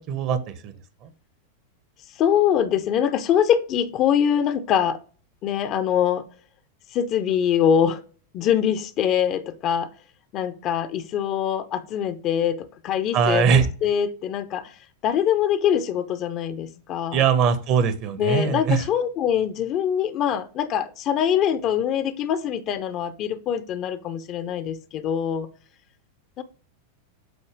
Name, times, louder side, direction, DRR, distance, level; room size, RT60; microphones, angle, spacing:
voice 1, 0.1-0.8 1.0-1.1 13.1-13.7 17.1-18.8, right 6 dB, 40° right, 0.8 m, -21 dB
voice 2, 2.1-5.0 5.4-6.3 6.9-8.0 8.3-9.9 10.3-17.3 18.2-25.5 26.4-26.5, left 9 dB, 35° left, 0.5 m, -23 dB
7.9 x 2.7 x 4.9 m
figure-of-eight pair, 90°, 0 cm